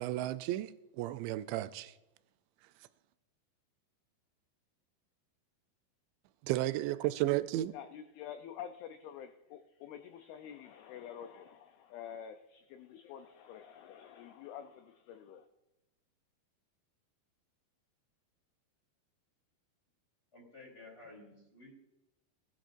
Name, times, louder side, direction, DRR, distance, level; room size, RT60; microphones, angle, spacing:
voice 1, 0.0-1.9 6.4-7.7, right 15 dB, 85° right, 2.8 m, -33 dB
voice 2, 7.7-12.3 12.7-15.5, left 9 dB, 85° left, 2.2 m, -48 dB
voice 3, 20.3-21.7, left 2 dB, 20° left, 2.9 m, -53 dB
19.5 x 12.0 x 2.6 m
omnidirectional pair, 5.1 m